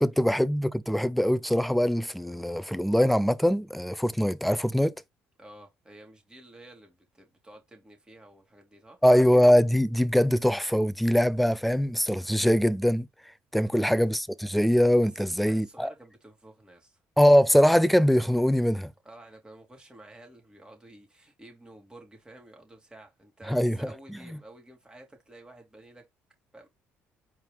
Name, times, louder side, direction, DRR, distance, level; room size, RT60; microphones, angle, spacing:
voice 1, 0.0-5.0 9.0-13.1 13.5-15.9 17.2-18.9 23.5-23.9, equal, ahead, 0.4 m, -22 dB
voice 2, 5.4-9.0 13.6-13.8 15.0-17.0 19.0-26.1 26.5-26.7, right 1 dB, 15° right, 2.6 m, -51 dB
4.5 x 3.5 x 3.4 m
supercardioid pair, 70°, 6 cm